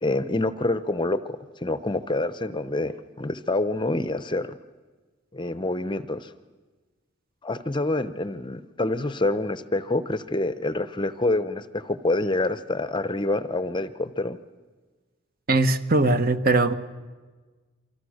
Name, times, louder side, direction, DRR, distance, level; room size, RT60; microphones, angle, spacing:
voice 1, 0.0-4.5 5.3-6.3 7.4-14.4, left 2 dB, 25° left, 13 dB, 0.7 m, -27 dB
voice 2, 15.5-16.7, right 2 dB, 45° right, 10 dB, 1.2 m, -20 dB
28.5 x 25.5 x 6.5 m, 1.3 s
head